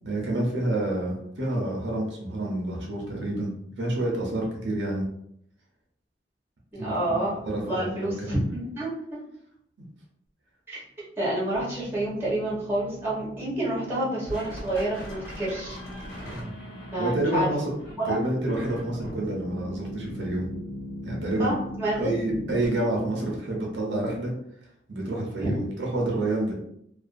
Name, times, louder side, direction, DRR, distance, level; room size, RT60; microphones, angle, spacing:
voice 1, 0.0-3.5 3.8-5.1 6.8-7.2 7.5-8.4 16.2-16.5 17.0-17.7 18.1-20.5 21.0-21.5 22.0-24.3 24.9-26.6, right 1 dB, 80° right, -2 dB, 0.7 m, -28 dB
voice 2, 6.7-7.3 7.6-9.2 10.7-10.8 11.2-15.8 16.9-17.5 18.0-18.2 21.4-22.1 25.4-25.5, right 1 dB, 15° right, -7 dB, 0.9 m, -28 dB
sound 1, 11.5-22.7, equal, 60° left, 1.1 m, -39 dB
2.5 x 2.3 x 2.5 m, 0.73 s
head